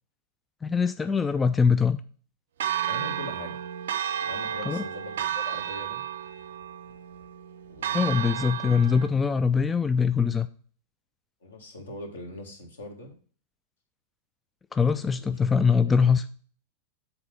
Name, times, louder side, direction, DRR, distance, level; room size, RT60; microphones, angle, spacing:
voice 1, 0.6-2.0 4.7-4.8 7.9-10.5 14.7-16.2, left 6 dB, 15° left, 12 dB, 0.3 m, -23 dB
Church bell, 2.6-9.1, right 10 dB, 60° right, 0.5 m, -32 dB
voice 2, 2.9-3.6 4.2-6.0 7.7-8.4 11.4-13.2 15.2-15.4 15.8-16.1, left 2 dB, 70° left, 2 dB, 1.7 m, -42 dB
7.0 x 4.1 x 5.0 m, 0.43 s
figure-of-eight pair, 90°, 0 cm